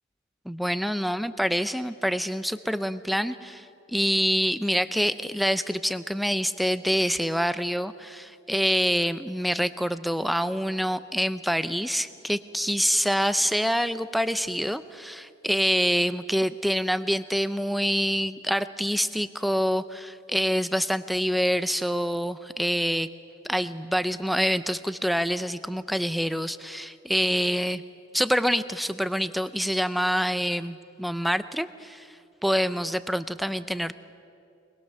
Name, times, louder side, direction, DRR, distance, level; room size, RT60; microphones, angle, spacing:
voice 1, 0.5-3.7 3.9-23.1 23.5-27.8 28.1-32.1 32.4-33.9, equal, ahead, 13 dB, 0.6 m, -26 dB
23.5 x 21.0 x 6.8 m, 2.6 s
head